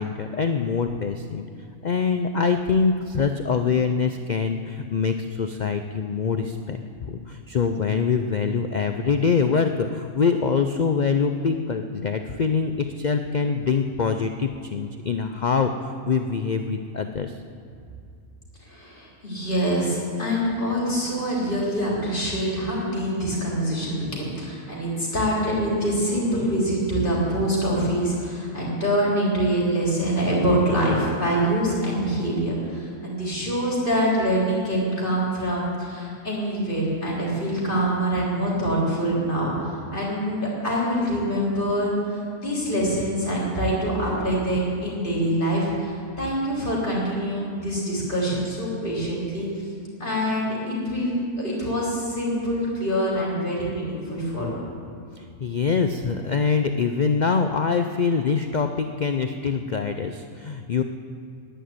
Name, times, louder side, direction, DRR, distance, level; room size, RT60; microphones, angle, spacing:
voice 1, 0.0-1.5 1.8-17.3 55.2-60.8, left 5 dB, 70° left, 7 dB, 0.4 m, -24 dB
voice 2, 18.6-49.5 50.0-54.6, equal, 35° left, -5 dB, 3.8 m, -25 dB
10.0 x 10.0 x 9.4 m, 2.4 s
omnidirectional pair, 1.5 m